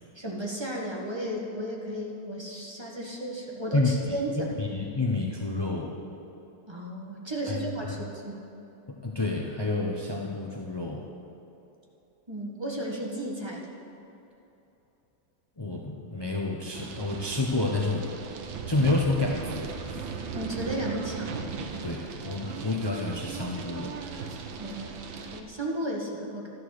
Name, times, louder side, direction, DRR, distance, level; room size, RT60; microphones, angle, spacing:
voice 1, 0.1-4.5 6.7-8.3 12.3-13.7 20.3-21.4 24.6-26.5, equal, 15° right, -2 dB, 1.5 m, -34 dB
voice 2, 3.7-4.2 4.6-6.0 7.5-8.0 9.0-11.1 15.6-18.1 18.7-20.1 21.8-23.9, left 2 dB, 35° left, -1 dB, 0.4 m, -29 dB
sound 1, 16.7-25.4, right 5 dB, 75° right, 1.7 m, -37 dB
12.5 x 12.5 x 6.6 m, 2.9 s
omnidirectional pair, 2.1 m